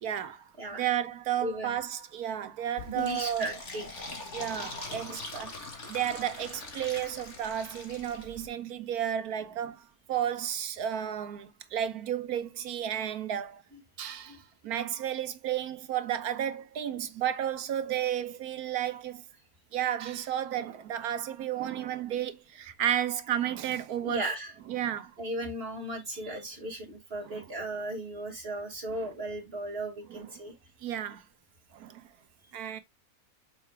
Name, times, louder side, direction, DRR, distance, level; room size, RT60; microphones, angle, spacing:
voice 1, 0.0-3.6 4.3-13.6 14.0-19.2 19.7-24.3 24.7-25.1 27.2-27.5 28.9-29.1 30.1-30.3 30.8-31.2 31.7-32.1 32.5-32.8, right 10 dB, 80° right, 1.3 m, -33 dB
voice 2, 1.4-1.8 2.9-3.8 5.0-5.1 14.3-14.4 24.0-24.5 25.2-30.5, right 1 dB, 40° right, 2.1 m, -36 dB
Fill (with liquid), 2.8-8.5, left 2 dB, 50° left, 2.0 m, -42 dB
6.7 x 4.8 x 3.3 m
omnidirectional pair, 1.6 m